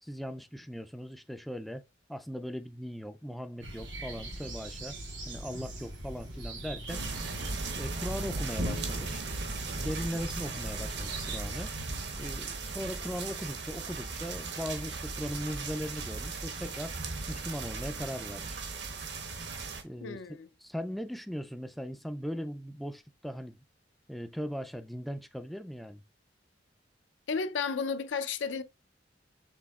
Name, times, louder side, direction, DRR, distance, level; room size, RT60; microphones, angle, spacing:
voice 1, 0.0-1.8 2.1-4.9 5.3-7.0 7.8-9.2 9.7-11.7 12.2-16.9 17.3-18.7 19.8-20.2 20.6-23.6 24.1-26.0, equal, ahead, 0.3 m, -39 dB
sound 1, 3.6-11.4, right 1 dB, 85° right, 2.8 m, -42 dB
sound 2, 6.9-19.8, right 3 dB, 65° right, 1.0 m, -37 dB
voice 2, 20.0-20.5 27.3-28.6, left 5 dB, 80° left, 0.5 m, -33 dB
6.1 x 3.5 x 2.3 m
head